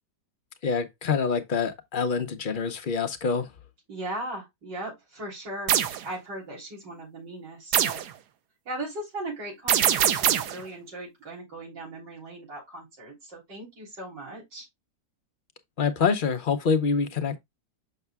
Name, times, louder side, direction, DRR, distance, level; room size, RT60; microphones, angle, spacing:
voice 1, 0.6-3.5 15.8-17.4, left 5 dB, 60° left, 0.5 m, -26 dB
voice 2, 3.9-8.0 8.7-14.7, right 1 dB, 90° right, 4.1 m, -38 dB
sound 1, 5.7-6.0 7.7-8.1 9.7-10.6, right 10 dB, 75° right, 1.3 m, -22 dB
6.6 x 6.5 x 2.2 m
omnidirectional pair, 1.8 m